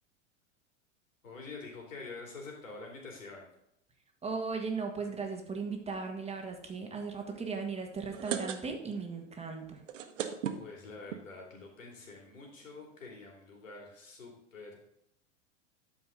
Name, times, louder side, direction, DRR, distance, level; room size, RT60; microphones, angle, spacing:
voice 1, 1.2-3.5 10.5-14.9, left 3 dB, 90° left, 0 dB, 3.0 m, -47 dB
voice 2, 4.2-9.8, right 4 dB, 15° right, 3 dB, 1.7 m, -37 dB
sound 1, 7.9-9.0 9.3-9.4 9.7-11.2 11.9-12.0 12.3-12.4 12.5-12.8, right 8 dB, 80° right, 1.1 m, -37 dB
12.0 x 5.2 x 3.8 m, 0.77 s
hypercardioid pair, 100°, 38 cm